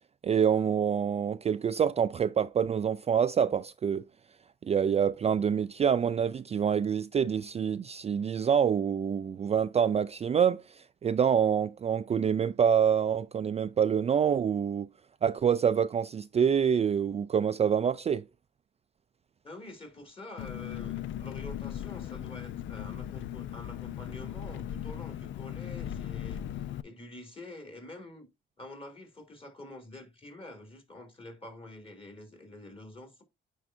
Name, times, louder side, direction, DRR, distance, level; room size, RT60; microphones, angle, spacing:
voice 1, 0.2-4.0 4.7-14.9 15.2-18.2, right 7 dB, 30° right, 0.4 m, -26 dB
voice 2, 19.4-28.3 28.6-33.2, left 1 dB, 25° left, 2.9 m, -47 dB
Engine, 20.4-26.8, left 11 dB, 75° left, 0.5 m, -38 dB
9.5 x 4.5 x 2.6 m
cardioid pair, 90°, 20 cm